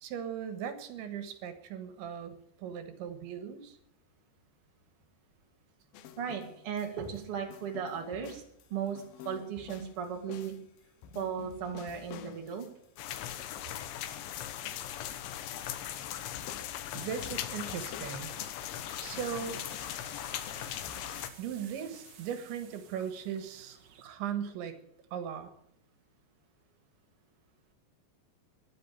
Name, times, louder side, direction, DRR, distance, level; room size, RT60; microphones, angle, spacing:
voice 1, 0.0-3.8 16.9-18.3 19.0-19.6 21.4-24.8 25.1-25.5, right 8 dB, 85° right, 9 dB, 3.9 m, -38 dB
sound 1, 5.9-7.2 7.5-15.2 15.5-18.8 19.1-22.3, left 7 dB, 70° left, 2.5 m, -51 dB
voice 2, 6.2-8.4 8.7-10.5 11.1-12.7, right 7 dB, 35° right, 2 dB, 3.0 m, -36 dB
sound 2, 13.0-21.3, left 11 dB, 90° left, 3.5 m, -39 dB
sound 3, 18.1-24.0, right 8 dB, 65° right, 1.7 m, -55 dB
16.5 x 11.0 x 7.0 m, 0.72 s
omnidirectional pair, 5.2 m